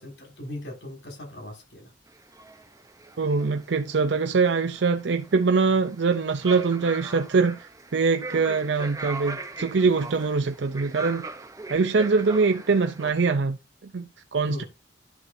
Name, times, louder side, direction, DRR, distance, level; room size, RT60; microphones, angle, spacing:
voice 1, 0.0-1.9 14.5-14.7, left 1 dB, 75° left, 6.1 m, -39 dB
sound 1, 2.1-13.1, right 3 dB, 20° right, 0.8 m, -40 dB
voice 2, 3.2-11.2 11.7-13.6 13.8-14.6, right 4 dB, 75° right, 0.5 m, -23 dB
11.0 x 7.0 x 2.7 m
head